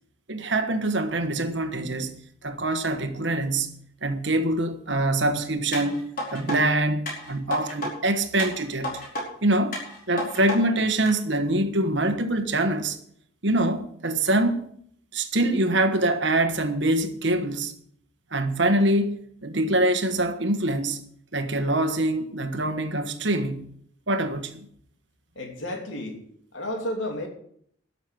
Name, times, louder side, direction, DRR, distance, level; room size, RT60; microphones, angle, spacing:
voice 1, 0.3-9.0 9.4-9.8 10.1-13.0 13.4-14.7 15.1-17.7 18.3-19.2 19.4-21.1 21.3-23.7 24.1-24.7, right 1 dB, 65° right, 1.4 m, -24 dB
sound 1, 5.7-6.6 7.1-7.9 8.4-9.2 9.7-10.6 11.1-11.2, left 1 dB, 45° left, 4.8 m, -32 dB
voice 2, 25.3-26.2 26.5-27.3, left 1 dB, 70° left, 2.9 m, -31 dB
12.5 x 6.9 x 9.1 m
head